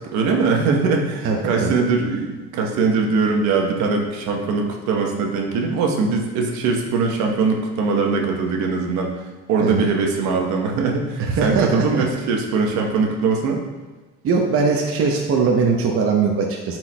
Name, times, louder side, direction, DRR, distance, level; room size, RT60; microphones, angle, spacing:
voice 1, 0.0-9.2 9.5-13.6, right 4 dB, 70° right, 1 dB, 1.1 m, -21 dB
voice 2, 1.2-1.7 9.6-9.9 11.2-12.1 14.2-16.8, right 4 dB, 50° right, 0 dB, 0.8 m, -20 dB
9.5 x 4.6 x 2.2 m, 1.2 s
supercardioid pair, 95°, 30 cm